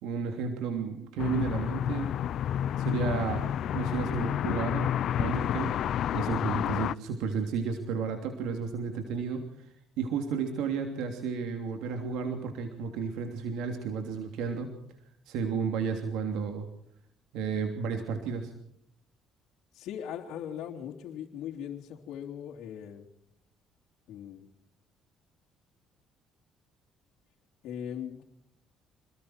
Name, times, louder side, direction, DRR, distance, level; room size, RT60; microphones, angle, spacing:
voice 1, 0.0-2.2 2.8-5.8 6.1-9.7 10.0-14.7 15.3-16.7 17.3-18.5, right 5 dB, 85° right, 5 dB, 3.1 m, -32 dB
sound 1, 1.2-6.9, left 10 dB, 60° left, 0.7 m, -30 dB
voice 2, 19.7-23.1 24.1-24.5 27.6-28.2, left 9 dB, 75° left, -2 dB, 3.2 m, -39 dB
28.0 x 21.0 x 4.5 m, 0.75 s
cardioid pair, 110°, 0 cm